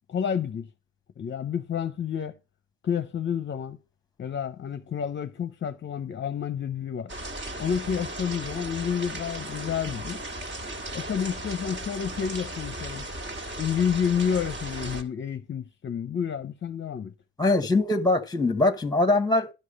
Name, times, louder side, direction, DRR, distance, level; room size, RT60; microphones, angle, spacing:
voice 1, 0.1-0.7 1.2-2.4 2.8-3.8 4.2-7.1 7.6-10.2 10.9-13.1 13.6-17.1, left 8 dB, 40° left, 0.7 m, -29 dB
sound 1, 7.1-15.0, right 1 dB, 40° right, 1.8 m, -36 dB
voice 2, 17.4-19.5, left 2 dB, 15° left, 1.1 m, -22 dB
12.0 x 4.8 x 5.3 m
cardioid pair, 90°, 30 cm